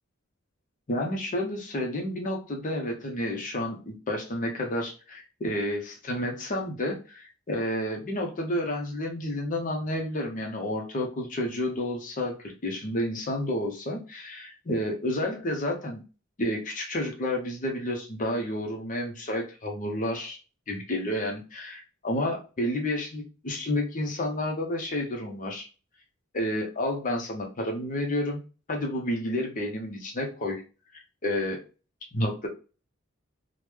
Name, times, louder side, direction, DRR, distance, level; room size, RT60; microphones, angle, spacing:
voice 1, 0.9-16.0 16.4-20.4 20.7-25.7 26.3-28.4 28.7-30.6 30.9-31.6 32.1-32.5, left 1 dB, 40° left, 2 dB, 0.7 m, -30 dB
3.1 x 2.1 x 3.4 m, 0.33 s
head